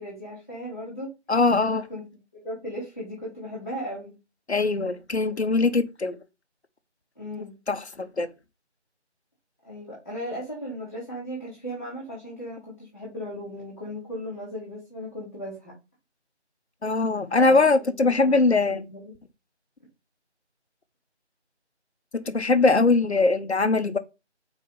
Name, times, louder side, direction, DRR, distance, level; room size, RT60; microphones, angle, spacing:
voice 1, 0.0-1.1 1.9-2.0 2.3-4.1 7.1-7.6 9.6-15.7 17.4-19.1, equal, 15° left, 1.5 m, -37 dB
voice 2, 1.3-1.9 4.5-6.2 7.7-8.3 16.8-18.9 22.1-24.0, left 3 dB, 65° left, 0.9 m, -21 dB
4.5 x 4.3 x 5.5 m
figure-of-eight pair, 170°, 35 cm